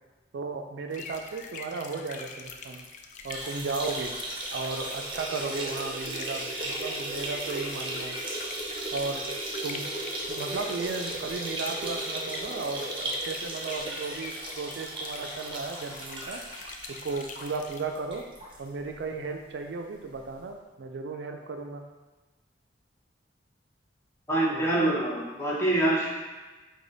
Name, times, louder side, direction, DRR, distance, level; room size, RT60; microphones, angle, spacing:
voice 1, 0.3-2.8 3.2-4.1 4.5-8.2 8.9-9.3 9.6-9.9 10.3-16.4 16.9-18.3 18.6-21.8 24.5-24.7, right 4 dB, 75° right, 4 dB, 0.4 m, -35 dB
sound 1, 0.9-17.8, left 5 dB, 45° left, 0.3 m, -45 dB
sound 2, 3.2-18.6 19.0-19.1 19.4-19.5 20.5-20.6, right 1 dB, 30° right, 0.6 m, -36 dB
voice 2, 24.3-26.1, right 1 dB, 15° left, -5 dB, 0.8 m, -25 dB
4.8 x 2.2 x 3.9 m, 1.2 s
head